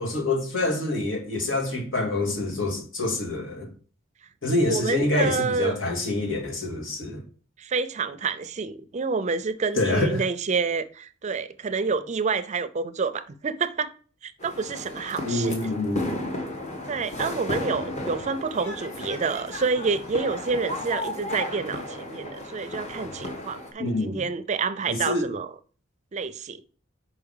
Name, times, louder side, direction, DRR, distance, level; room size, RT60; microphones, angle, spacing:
voice 1, 0.0-3.7 4.4-7.2 9.8-10.3 15.3-16.1 23.8-24.2 24.9-25.3, left 2 dB, 75° left, 2.0 m, -26 dB
voice 2, 4.7-5.7 7.6-13.9 14.2-15.6 16.9-25.5 26.1-26.6, right 4 dB, 35° right, 0.4 m, -28 dB
sound 1, 14.4-23.7, left 1 dB, 35° left, 1.4 m, -34 dB
5.1 x 4.8 x 5.4 m
head